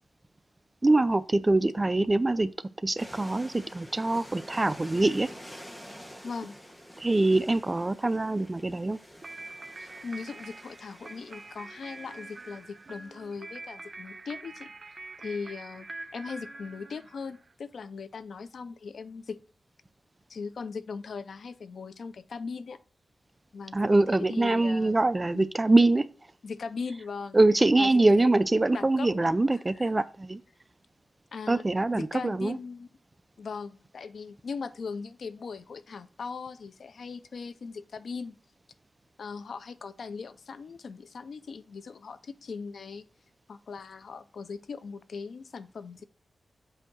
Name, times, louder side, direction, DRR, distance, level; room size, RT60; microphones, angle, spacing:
voice 1, 0.8-2.5 2.8-5.3 7.0-9.0 23.7-26.1 27.3-30.4 31.5-32.6, right 2 dB, 25° right, 0.4 m, -24 dB
sound 1, 3.0-13.2, equal, 10° left, 1.1 m, -48 dB
voice 2, 6.2-6.6 9.8-15.9 16.1-19.4 20.3-22.8 23.5-25.0 25.3-25.5 26.4-27.4 27.8-28.3 28.7-29.9 31.3-31.6 31.9-32.9 33.4-38.4 39.2-43.0 43.5-46.0, left 5 dB, 70° left, 0.5 m, -39 dB
sound 2, 9.2-17.5, right 3 dB, 45° right, 0.7 m, -45 dB
7.7 x 2.7 x 6.0 m
wide cardioid pair, 105°, 0 cm